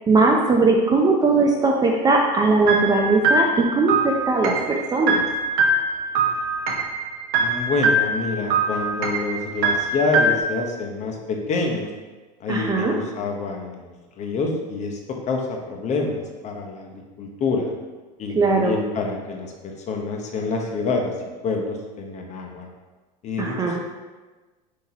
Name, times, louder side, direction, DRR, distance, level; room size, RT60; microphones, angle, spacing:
voice 1, 0.1-5.2 12.5-12.9 18.3-18.8 23.4-23.8, right 3 dB, 20° right, 0 dB, 0.4 m, -19 dB
sound 1, 2.7-10.4, right 2 dB, 50° right, 0.7 m, -23 dB
voice 2, 7.4-11.9 12.4-15.0 15.3-15.4 15.7-17.7 18.2-19.5 19.9-21.1 21.4-22.7 23.2-23.8, left 3 dB, 35° left, 1 dB, 0.8 m, -27 dB
5.6 x 2.8 x 2.7 m, 1.2 s
supercardioid pair, 110°, 21 cm